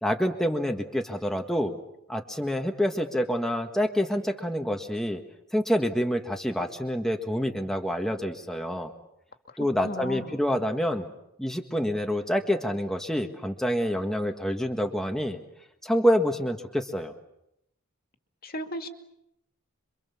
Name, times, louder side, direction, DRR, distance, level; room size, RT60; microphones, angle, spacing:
voice 1, 0.0-1.7 2.1-5.2 5.5-8.9 9.6-11.1 11.4-15.4 15.8-17.1, equal, ahead, 3 dB, 1.6 m, -27 dB
voice 2, 9.8-10.5 18.4-18.9, left 1 dB, 45° left, 6 dB, 2.4 m, -36 dB
27.0 x 24.5 x 7.2 m, 0.82 s
head